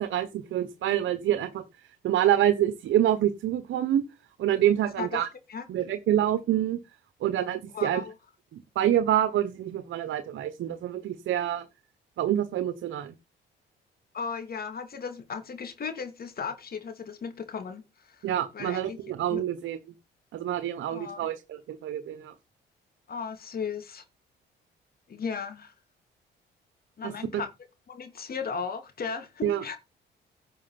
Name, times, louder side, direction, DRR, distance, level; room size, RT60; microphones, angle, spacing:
voice 1, 0.0-1.6 2.0-4.0 4.4-5.3 5.7-6.8 7.2-8.0 8.5-11.6 12.2-13.1 18.2-19.8 20.3-22.3 27.0-27.1 29.4-29.6, right 11 dB, 75° right, 1.3 m, -26 dB
voice 2, 7.7-8.1 14.1-19.0 19.3-19.4 20.9-21.3 23.1-24.0 25.1-25.7 27.0-27.5 27.9-29.8, left 5 dB, 50° left, 2.9 m, -36 dB
11.0 x 6.6 x 6.0 m
cardioid pair, 90°, 20 cm